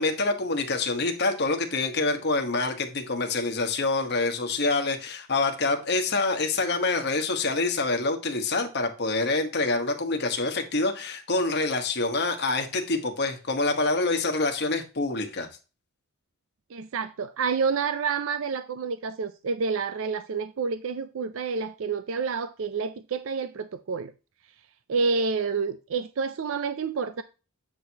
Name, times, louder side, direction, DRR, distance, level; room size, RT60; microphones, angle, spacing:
voice 1, 0.0-15.5, left 3 dB, 50° left, 1.2 m, -26 dB
voice 2, 16.7-24.1 24.9-27.2, right 5 dB, 60° right, 0.4 m, -29 dB
8.3 x 6.1 x 2.8 m
head